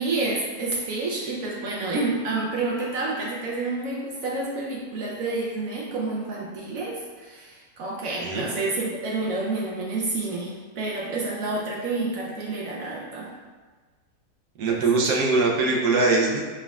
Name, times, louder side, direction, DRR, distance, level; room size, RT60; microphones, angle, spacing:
voice 1, 0.0-13.3 14.7-15.0, right 3 dB, 70° right, -3 dB, 0.9 m, -29 dB
voice 2, 8.2-8.5 14.6-16.4, right 3 dB, 90° right, -1 dB, 1.2 m, -22 dB
4.4 x 3.5 x 2.3 m, 1.4 s
omnidirectional pair, 1.6 m